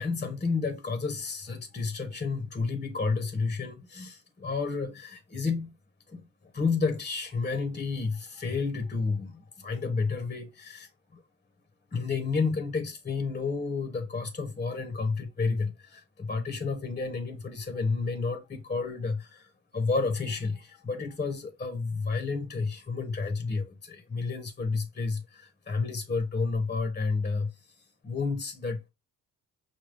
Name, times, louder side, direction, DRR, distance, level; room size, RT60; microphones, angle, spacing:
voice 1, 0.0-5.7 6.1-11.2 11.9-27.7 28.0-28.9, left 4 dB, 25° left, 0.8 m, -31 dB
6.0 x 2.3 x 3.3 m
cardioid pair, 90°, 30 cm